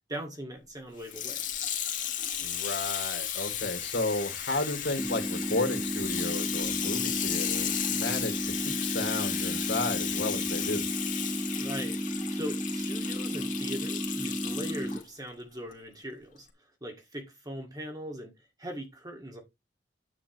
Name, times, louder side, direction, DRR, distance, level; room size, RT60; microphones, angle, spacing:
voice 1, 0.1-1.4 11.6-12.0 12.3-18.3 18.6-19.4, equal, 20° right, 2.0 m, -40 dB
Water tap faucet / Sink (filling or washing), 1.0-15.0 15.7-15.8, left 9 dB, 45° left, 2.3 m, -34 dB
voice 2, 2.4-10.8, left 2 dB, 65° left, 2.8 m, -33 dB
sound 1, 5.0-15.0, equal, 5° right, 0.7 m, -33 dB
9.8 x 9.0 x 3.0 m
head